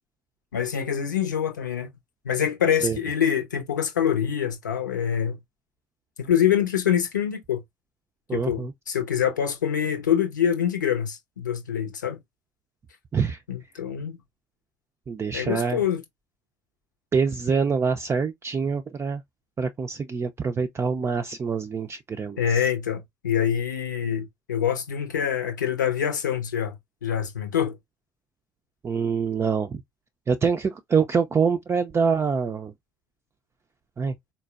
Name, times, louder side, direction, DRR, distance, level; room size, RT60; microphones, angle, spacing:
voice 1, 0.5-1.9 2.2-5.4 6.2-7.6 8.3-12.2 13.5-14.2 15.3-16.0 22.4-26.7 27.0-27.7, left 9 dB, 85° left, 0.7 m, -25 dB
voice 2, 8.3-8.7 13.1-13.4 15.1-15.8 17.1-19.2 19.6-22.7 28.8-29.8 30.3-32.7 34.0-34.2, right 5 dB, 25° right, 0.4 m, -25 dB
4.1 x 2.1 x 2.3 m
figure-of-eight pair, 55°, 10 cm